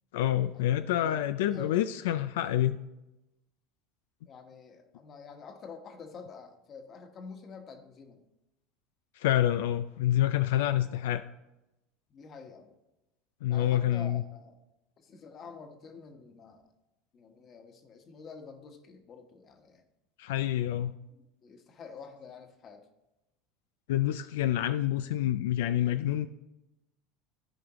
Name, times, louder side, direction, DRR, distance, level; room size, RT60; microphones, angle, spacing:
voice 1, 0.1-2.8 9.2-11.2 13.4-14.2 20.2-20.9 23.9-26.3, left 12 dB, 90° left, 11 dB, 0.3 m, -27 dB
voice 2, 0.9-2.0 4.3-8.2 12.1-12.7 13.5-14.6 15.0-16.7 17.1-19.8 20.6-20.7 21.4-22.9, left 5 dB, 35° left, 6 dB, 1.2 m, -48 dB
13.5 x 5.0 x 3.0 m, 0.95 s
supercardioid pair, 120°, 0 cm